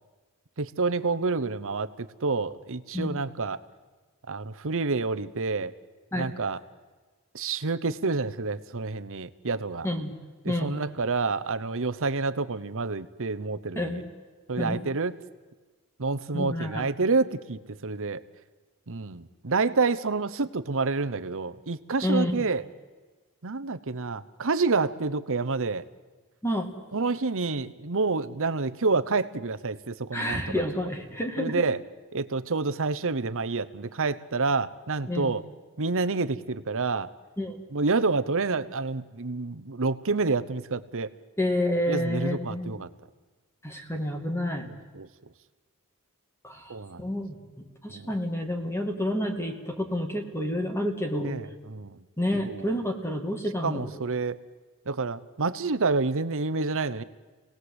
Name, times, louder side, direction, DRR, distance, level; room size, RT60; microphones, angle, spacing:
voice 1, 0.6-3.6 4.3-5.7 6.1-6.6 7.3-9.9 10.4-14.0 14.5-15.1 16.0-18.2 18.9-22.6 23.4-25.8 26.9-30.6 31.4-31.8 32.1-35.4 35.8-37.1 37.7-41.1 41.9-42.9 44.9-45.1 46.7-47.0 47.9-48.1 51.2-52.0 52.5-52.7 53.6-54.4 54.9-57.0, right 3 dB, 65° right, 12 dB, 1.0 m, -28 dB
voice 2, 9.8-10.1 10.5-10.8 13.8-14.0 14.6-14.9 16.3-16.8 22.0-22.5 26.4-26.7 30.1-31.6 35.1-35.3 37.4-37.6 41.4-42.8 43.6-44.7 46.4-47.4 47.8-51.3 52.2-54.0, left 1 dB, 10° left, 4 dB, 2.4 m, -29 dB
28.0 x 18.5 x 8.1 m, 1.4 s
head